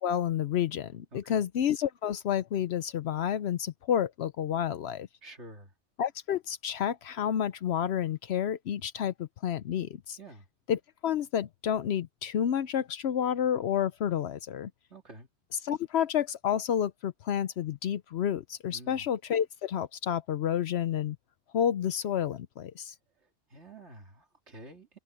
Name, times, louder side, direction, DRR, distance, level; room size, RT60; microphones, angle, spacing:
voice 1, 0.0-5.1 6.0-10.2 10.7-14.7 15.6-21.2 21.5-22.9, left 9 dB, 70° left, 0.9 m, -30 dB
voice 2, 1.1-1.5 5.2-5.7 10.2-10.5 14.9-15.3 18.7-19.1 23.2-25.0, right 2 dB, 80° right, 3.2 m, -49 dB
omnidirectional pair, 1.2 m